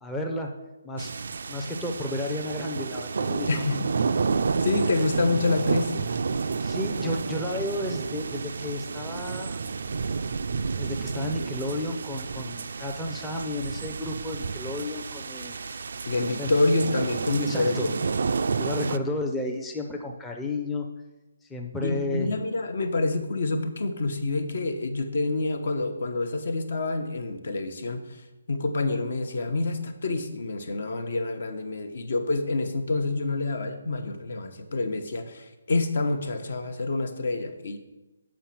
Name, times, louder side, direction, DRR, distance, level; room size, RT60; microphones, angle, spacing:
voice 1, 0.0-0.6 0.8-1.1 1.5-3.6 6.6-9.7 10.7-15.5 16.4-16.5 17.4-18.0 18.6-20.9 21.4-22.3, left 2 dB, 5° left, 0 dB, 0.5 m, -32 dB
sound 1, 1.0-19.0, right 5 dB, 65° right, 0.3 m, -30 dB
voice 2, 3.5-3.9 4.6-6.2 16.0-17.9 21.8-28.0 28.5-37.8, left 2 dB, 60° left, 8 dB, 0.9 m, -27 dB
7.1 x 5.2 x 5.8 m, 1.1 s
hypercardioid pair, 165°, 0 cm